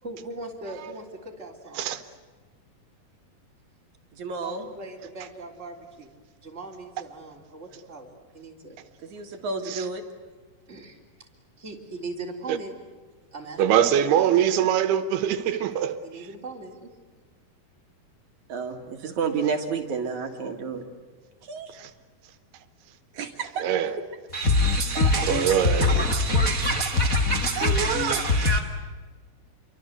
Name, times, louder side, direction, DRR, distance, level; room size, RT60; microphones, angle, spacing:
voice 1, 0.0-2.0 4.4-6.1 6.4-8.8 10.7-11.3 11.6-12.7 13.3-14.5 16.0-16.9, right 2 dB, 20° right, 3.4 m, -40 dB
voice 2, 4.1-4.7 9.1-10.0 18.5-20.8 21.4-21.7 23.1-23.7, right 5 dB, 55° right, 3.0 m, -30 dB
voice 3, 13.6-16.0 21.7-21.9 23.6-24.0 25.1-25.9 27.6-28.2, right 10 dB, 80° right, 3.2 m, -23 dB
voice 4, 24.3-28.6, left 2 dB, 60° left, 0.8 m, -23 dB
28.5 x 24.0 x 8.1 m
omnidirectional pair, 4.5 m